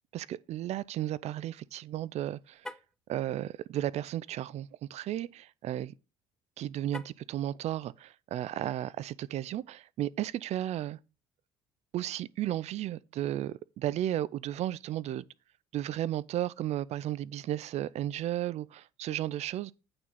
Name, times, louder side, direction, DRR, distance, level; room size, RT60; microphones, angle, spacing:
voice 1, 0.1-2.6 3.1-5.9 6.6-11.0 11.9-15.3 15.7-19.7, right 12 dB, 50° right, 0.5 m, -34 dB
Car, 2.5-3.0 6.9-7.4, left 1 dB, 5° left, 0.5 m, -44 dB
8.8 x 6.1 x 4.1 m
hypercardioid pair, 60°, 14 cm